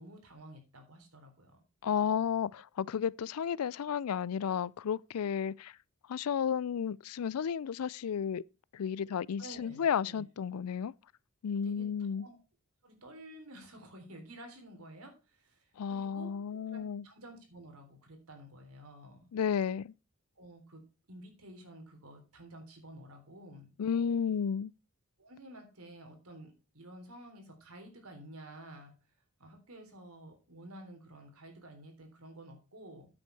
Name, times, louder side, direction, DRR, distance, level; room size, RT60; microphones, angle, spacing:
voice 1, 0.0-1.6 9.4-10.2 11.6-12.4 12.8-16.4 16.7-19.3 20.4-20.8 21.1-23.7 25.2-29.0 29.4-33.1, right 1 dB, 80° right, 3.6 m, -51 dB
voice 2, 1.8-5.8 6.1-8.4 8.7-10.9 11.4-12.3 15.8-17.0 19.3-19.9 23.8-24.7, left 7 dB, 85° left, 0.4 m, -32 dB
9.7 x 8.0 x 4.6 m
head